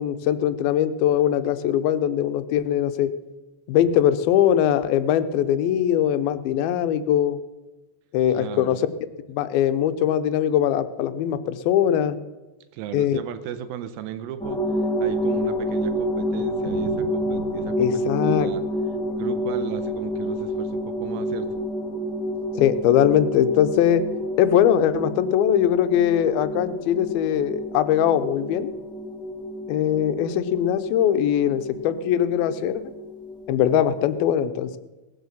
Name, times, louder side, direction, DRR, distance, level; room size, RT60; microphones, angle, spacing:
voice 1, 0.0-3.1 3.7-7.4 8.1-8.8 9.3-12.2 12.9-13.2 17.8-18.5 22.5-24.0 24.4-28.7 29.7-32.8 33.5-34.8, left 10 dB, 85° left, 11 dB, 2.6 m, -21 dB
voice 2, 8.3-8.8 12.7-14.6 15.0-18.6 19.1-21.5, right 10 dB, 90° right, 11 dB, 2.5 m, -36 dB
sound 1, 14.4-34.2, equal, ahead, 1.4 m, -29 dB
Thunder, 15.7-21.0 21.3-21.4 21.7-21.8 22.0-22.1 22.7-23.0, right 2 dB, 45° right, 2.7 m, -44 dB
18.5 x 7.5 x 7.2 m, 1.1 s
omnidirectional pair, 4.2 m